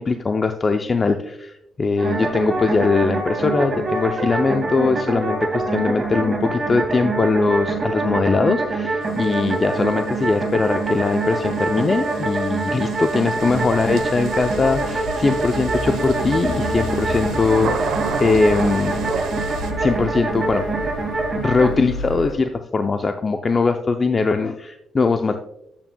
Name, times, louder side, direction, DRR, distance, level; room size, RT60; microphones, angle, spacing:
voice 1, 0.0-19.0 19.7-20.6 21.3-25.4, left 4 dB, 30° left, 7 dB, 0.5 m, -21 dB
sound 1, 2.0-21.7, right 3 dB, 30° right, 2.2 m, -25 dB
sound 2, 9.0-19.7, right 6 dB, 80° right, 0.9 m, -34 dB
sound 3, 13.3-22.3, left 2 dB, 80° left, 2.2 m, -32 dB
8.7 x 8.6 x 2.2 m, 0.80 s
cardioid pair, 90°, 0 cm